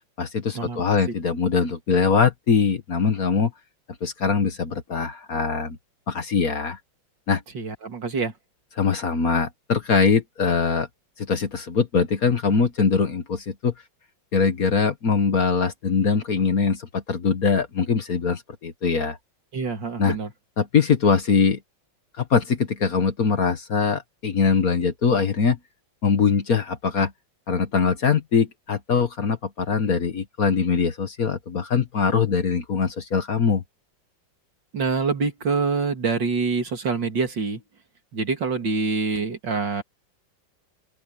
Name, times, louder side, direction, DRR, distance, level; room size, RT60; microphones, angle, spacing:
voice 1, 0.2-3.5 4.0-5.8 6.1-6.8 7.3-7.4 8.8-10.9 11.2-13.7 14.3-19.2 20.0-20.1 20.6-21.6 22.2-25.6 26.0-27.1 27.5-33.6, left 5 dB, 50° left, 1.7 m, -22 dB
voice 2, 7.5-8.3 19.5-20.3 34.7-37.6 38.1-39.8, right 4 dB, 65° right, 3.2 m, -25 dB
open air
omnidirectional pair, 2.2 m